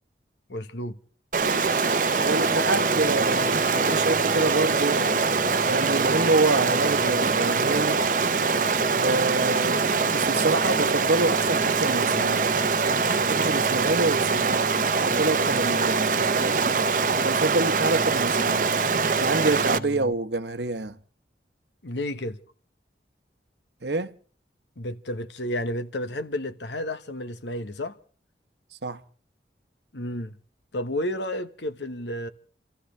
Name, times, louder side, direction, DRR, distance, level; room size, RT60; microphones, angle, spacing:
voice 1, 0.5-1.0 21.8-22.4 24.8-28.0 29.9-30.3 30.7-32.3, left 1 dB, 80° left, 1.2 m, -31 dB
Stream, 1.3-19.8, right 4 dB, 45° right, 0.7 m, -23 dB
sound 1, 1.4-20.1, left 1 dB, 10° left, 1.2 m, -37 dB
voice 2, 2.2-5.1 5.6-8.0 8.9-12.6 13.2-14.6 15.0-16.3 17.2-18.7 19.2-21.0 23.8-24.1 28.8-29.0, right 2 dB, 75° right, 1.0 m, -27 dB
29.5 x 14.0 x 3.3 m
head